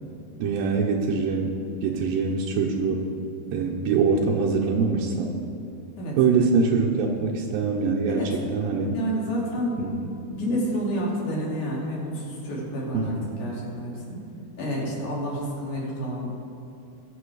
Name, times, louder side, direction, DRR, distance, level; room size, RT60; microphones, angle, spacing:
voice 1, 0.4-3.1 3.5-5.4 6.2-9.0 9.8-10.0 12.9-13.4, right 4 dB, 85° right, -2 dB, 2.6 m, -24 dB
voice 2, 8.9-9.8 10.2-14.2 14.6-16.4, equal, 60° left, -4 dB, 4.2 m, -29 dB
21.0 x 7.2 x 4.9 m, 2.7 s
omnidirectional pair, 4.1 m